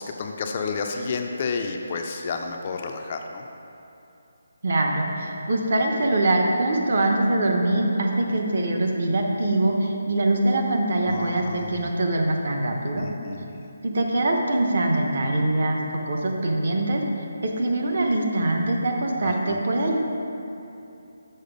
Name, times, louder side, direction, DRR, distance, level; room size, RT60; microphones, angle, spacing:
voice 1, 0.0-3.5 11.0-11.9 13.0-13.4 19.2-19.6, left 4 dB, 25° left, 3 dB, 0.3 m, -31 dB
voice 2, 4.6-13.1 13.8-15.8 16.1-17.0 17.4-20.0, right 2 dB, 50° right, 1 dB, 0.9 m, -23 dB
6.6 x 4.8 x 5.1 m, 2.8 s
hypercardioid pair, 175°, 0 cm